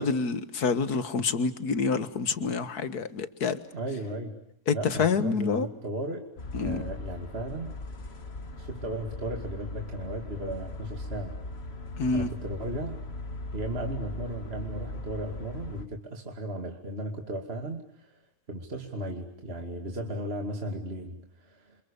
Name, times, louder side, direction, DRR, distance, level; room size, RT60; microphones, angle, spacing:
voice 1, 0.0-3.6 4.7-5.7 6.5-6.8 12.0-12.3, left 5 dB, 65° left, 12 dB, 2.1 m, -27 dB
voice 2, 3.7-4.4 4.7-6.3 6.6-7.8 8.6-11.4 12.1-13.0 13.5-18.2 18.5-21.8, right 1 dB, 35° right, 3 dB, 2.8 m, -36 dB
sound 1, 6.4-15.8, left 2 dB, 35° left, 2.0 m, -39 dB
30.0 x 27.5 x 6.9 m, 0.69 s
omnidirectional pair, 1.8 m